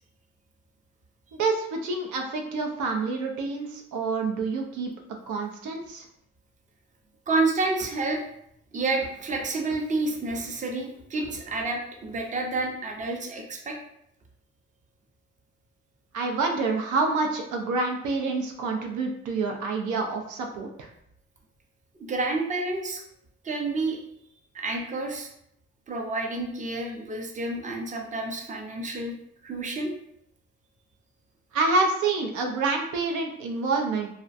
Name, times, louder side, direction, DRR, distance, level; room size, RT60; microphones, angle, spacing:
voice 1, 1.3-4.9 5.3-6.1 16.1-20.9 31.5-34.1, right 3 dB, 80° right, 3 dB, 0.5 m, -27 dB
voice 2, 7.3-8.2 8.7-13.8 22.0-23.0 23.4-24.0 24.5-25.3 25.9-29.2 29.4-29.9, right 3 dB, 25° right, 1 dB, 0.5 m, -29 dB
2.4 x 2.1 x 2.5 m, 0.74 s
cardioid pair, 90°, 30 cm